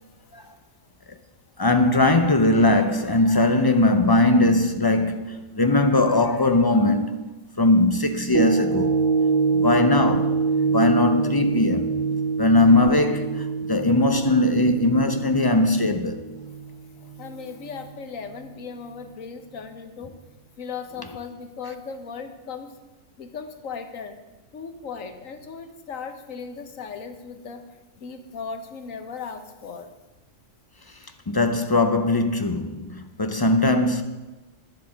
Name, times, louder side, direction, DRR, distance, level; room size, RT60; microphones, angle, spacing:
voice 1, 1.6-7.3 7.6-9.0 9.5-10.4 10.7-11.9 12.4-16.3 31.3-34.0, left 2 dB, 40° left, 0.3 m, -20 dB
sound 1, 8.3-16.7 17.2-17.3, right 4 dB, 50° right, 0.5 m, -25 dB
voice 2, 17.0-20.1 20.6-22.8 23.2-24.2 24.5-27.7 28.0-29.9 33.6-33.7, left 5 dB, 80° left, 1.4 m, -37 dB
10.5 x 7.6 x 7.4 m
omnidirectional pair, 1.4 m